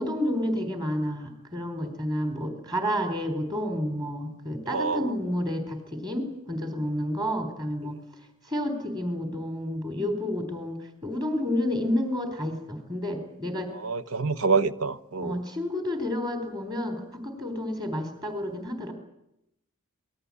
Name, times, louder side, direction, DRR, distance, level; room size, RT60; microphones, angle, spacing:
voice 1, 0.0-8.0 8.5-13.7 15.2-18.9, left 1 dB, 20° right, 4.0 m, -30 dB
voice 2, 4.7-5.1 13.8-15.4, right 4 dB, 75° right, 1.2 m, -26 dB
26.5 x 20.0 x 8.6 m
head